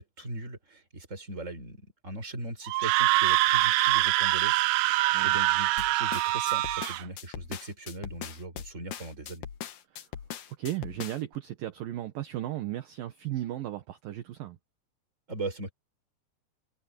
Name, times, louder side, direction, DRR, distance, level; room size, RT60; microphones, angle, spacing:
voice 1, 0.0-9.5 15.3-15.7, right 2 dB, 15° right, 4.5 m, -39 dB
Screaming, 2.7-7.0, right 18 dB, 85° right, 3.0 m, -24 dB
sound 1, 5.8-11.4, left 9 dB, 60° left, 2.5 m, -40 dB
voice 2, 10.6-14.6, right 13 dB, 65° right, 2.5 m, -35 dB
omnidirectional pair, 5.2 m